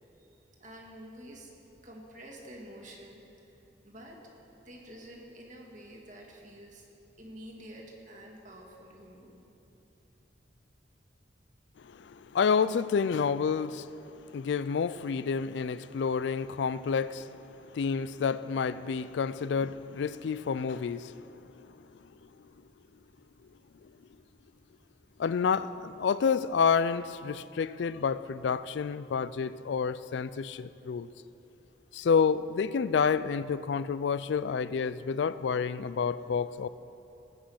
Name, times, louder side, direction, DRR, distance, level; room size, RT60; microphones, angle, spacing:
voice 1, 0.6-1.5 1.8-4.2 4.6-6.9 7.2-9.4 9.6-9.7, equal, 40° right, 0 dB, 2.1 m, -49 dB
voice 2, 11.8-14.0 14.3-21.7 25.2-31.1 31.9-36.7, left 6 dB, 70° left, 15 dB, 0.3 m, -29 dB
18.5 x 6.4 x 7.8 m, 3.0 s
head